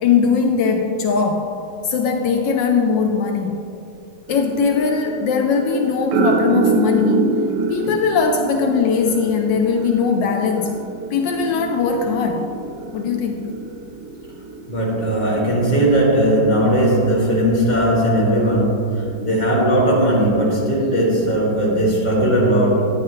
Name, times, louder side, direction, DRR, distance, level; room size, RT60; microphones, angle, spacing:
voice 1, 0.0-1.5 1.8-3.6 4.3-7.4 7.7-10.8 11.1-12.5 12.9-13.4, left 5 dB, 80° left, 4 dB, 1.3 m, -20 dB
sound 1, 4.3-19.4 20.0-20.3, right 4 dB, 90° right, 1.4 m, -27 dB
voice 2, 14.7-22.9, right 1 dB, 25° left, -5 dB, 2.0 m, -18 dB
11.0 x 9.5 x 3.1 m, 2.6 s
omnidirectional pair, 2.1 m